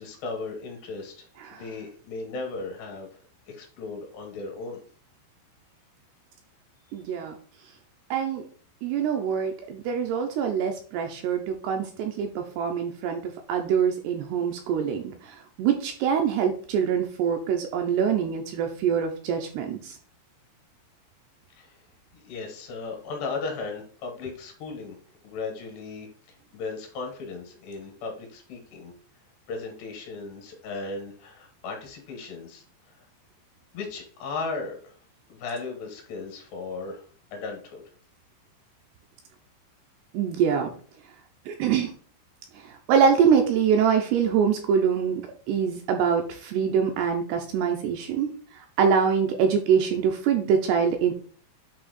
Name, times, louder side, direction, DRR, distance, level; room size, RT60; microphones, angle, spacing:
voice 1, 0.0-3.1 3.5-4.8 6.9-7.0 21.5-21.9 22.1-25.0 25.2-28.9 29.5-33.1 33.7-35.0 35.3-37.9, left 3 dB, 70° left, 2 dB, 3.3 m, -36 dB
voice 2, 6.9-7.4 8.1-8.5 8.8-13.2 13.5-20.0 40.1-40.7 41.5-41.9 42.5-42.6 42.9-51.1, right 7 dB, 80° right, 3 dB, 2.5 m, -24 dB
8.6 x 2.9 x 4.1 m, 0.44 s
omnidirectional pair, 5.2 m